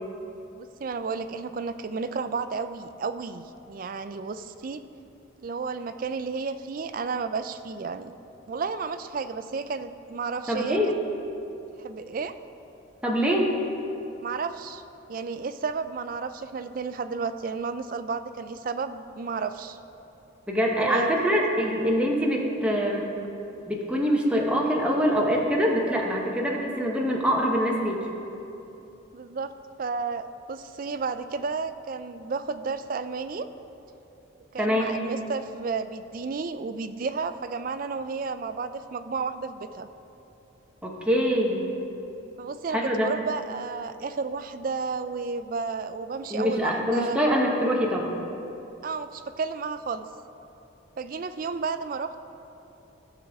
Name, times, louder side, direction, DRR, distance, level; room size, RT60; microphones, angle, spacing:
voice 1, 0.5-4.8 5.4-8.2 8.5-10.8 11.8-12.3 14.2-14.8 15.1-19.8 20.8-21.2 29.1-29.5 29.8-33.5 34.5-39.9 42.4-47.2 48.8-50.0 51.0-52.2, right 4 dB, 45° right, 11 dB, 0.3 m, -32 dB
voice 2, 10.5-10.9 13.0-13.5 20.5-23.1 23.7-28.0 34.6-35.0 40.8-41.7 42.7-43.1 46.3-48.1, equal, 5° right, -2 dB, 0.9 m, -24 dB
14.5 x 6.7 x 3.5 m, 2.9 s
head